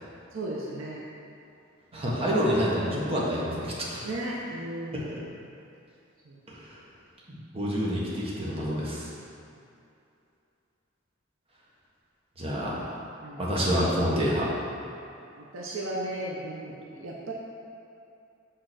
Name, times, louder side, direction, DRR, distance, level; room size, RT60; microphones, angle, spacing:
voice 1, 0.3-1.0 1.9-2.1 4.0-5.1 6.2-6.4 13.2-13.5 15.4-17.3, right 1 dB, 70° right, -3 dB, 0.8 m, -35 dB
voice 2, 1.9-4.0 4.9-5.0 6.5-6.8 7.3-9.1 12.4-12.9 13.4-14.5, equal, 30° right, -6 dB, 1.4 m, -28 dB
6.7 x 3.8 x 6.1 m, 2.6 s
head